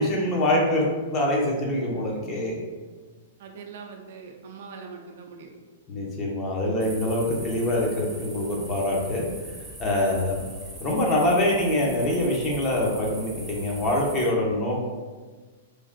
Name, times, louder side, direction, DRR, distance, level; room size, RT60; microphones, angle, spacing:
voice 1, 0.0-2.6 5.9-9.3 9.8-10.4 10.8-14.8, left 1 dB, 30° left, -2 dB, 0.7 m, -24 dB
voice 2, 3.4-5.5, right 5 dB, 55° right, 2 dB, 0.4 m, -42 dB
sound 1, 6.8-14.3, right 2 dB, 10° right, 0.7 m, -42 dB
3.2 x 2.4 x 2.5 m, 1.4 s
figure-of-eight pair, 105°, 0 cm